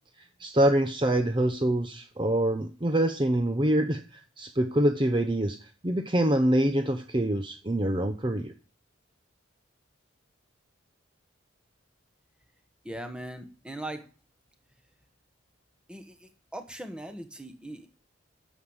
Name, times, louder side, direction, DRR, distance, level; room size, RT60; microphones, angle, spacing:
voice 1, 0.4-8.5, right 1 dB, 25° right, 7 dB, 0.8 m, -25 dB
voice 2, 12.8-14.1 15.9-17.9, right 1 dB, 5° right, 6 dB, 1.4 m, -40 dB
12.5 x 7.3 x 8.0 m, 0.37 s
head